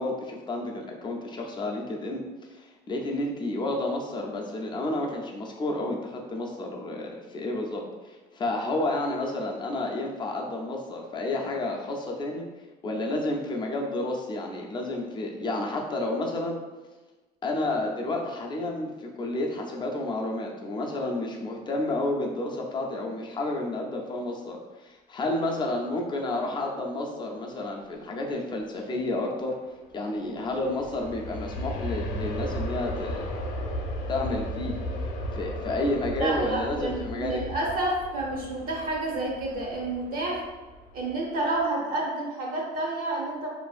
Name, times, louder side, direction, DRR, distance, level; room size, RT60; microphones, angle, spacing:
voice 1, 0.0-12.5 12.8-16.6 17.4-29.5 29.9-33.3 34.1-34.8 35.3-37.4, left 2 dB, 25° left, 0 dB, 0.4 m, -30 dB
Aircraft, 30.3-41.1 41.6-41.7, equal, 90° left, 0.5 m, -35 dB
voice 2, 36.2-40.4 40.9-43.5, right 2 dB, 55° right, -2 dB, 0.7 m, -29 dB
2.5 x 2.3 x 2.4 m, 1.2 s
cardioid pair, 110°, 17 cm